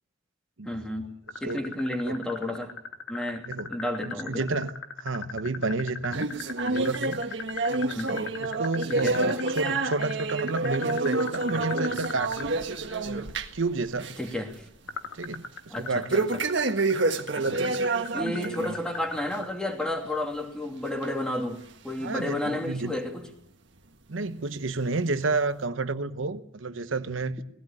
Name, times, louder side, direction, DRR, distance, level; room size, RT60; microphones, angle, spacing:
voice 1, 0.6-2.7 3.1-4.5 7.9-8.2 8.9-9.2 14.2-14.6 15.7-16.4 18.1-23.3, left 1 dB, 5° left, 2.7 m, -32 dB
sound 1, 1.3-12.5 14.9-19.5, left 5 dB, 85° left, 1.9 m, -37 dB
voice 2, 4.0-4.7 5.0-6.3 6.7-7.2 8.4-12.5 13.1-14.1 15.1-16.2 17.5-17.6 22.0-23.0 24.1-27.4, right 3 dB, 85° right, 1.0 m, -30 dB
sound 2, 6.1-13.7 14.0-14.3 14.7-14.8 16.1-18.8 19.2-19.4 20.0-20.1 21.0-21.1 21.9-22.0, right 3 dB, 65° right, 1.6 m, -28 dB
19.0 x 16.0 x 8.9 m
head